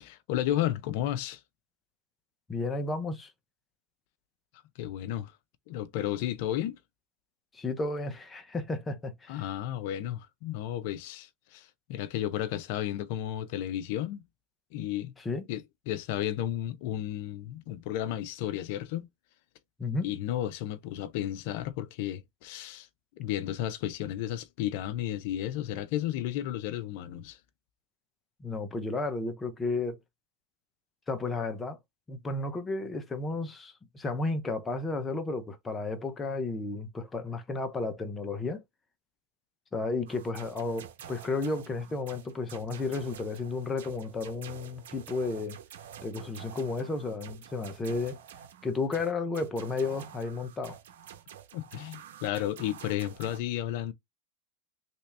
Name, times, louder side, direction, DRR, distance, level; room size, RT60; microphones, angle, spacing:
voice 1, 0.0-1.4 4.8-5.3 5.7-6.8 9.3-14.2 14.7-15.1 15.5-19.1 20.0-22.9 23.2-27.4 51.5-53.9, left 12 dB, 65° left, 0.5 m, -33 dB
voice 2, 2.5-3.3 7.5-9.3 15.2-15.4 19.8-20.1 28.4-30.0 31.1-31.8 32.1-38.6 39.7-45.6 46.0-48.2 48.6-50.8, left 3 dB, 15° left, 0.8 m, -33 dB
sound 1, 40.1-53.4, right 9 dB, 85° right, 0.9 m, -49 dB
3.3 x 2.8 x 3.3 m
supercardioid pair, 125°, 0 cm